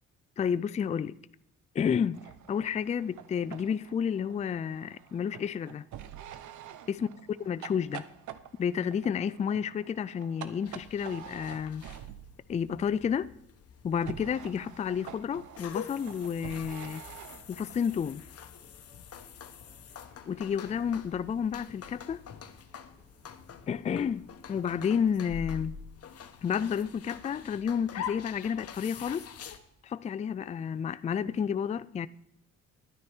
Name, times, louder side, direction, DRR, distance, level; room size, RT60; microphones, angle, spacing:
voice 1, 0.4-1.2 1.7-2.2 2.5-5.8 6.9-7.1 7.4-8.1 8.6-11.8 12.5-13.3 13.8-17.0 17.5-18.2 20.3-22.2 23.7-25.7 26.4-29.3 29.8-32.1, left 7 dB, 25° left, 0.3 m, -31 dB
sound 1, 2.1-12.4 13.9-18.0, right 10 dB, 75° right, 0.8 m, -47 dB
sound 2, 10.7-29.6, left 8 dB, 55° left, 1.0 m, -45 dB
sound 3, 17.9-29.7, equal, 30° right, 2.5 m, -62 dB
11.5 x 9.6 x 4.4 m
cardioid pair, 90°, 30 cm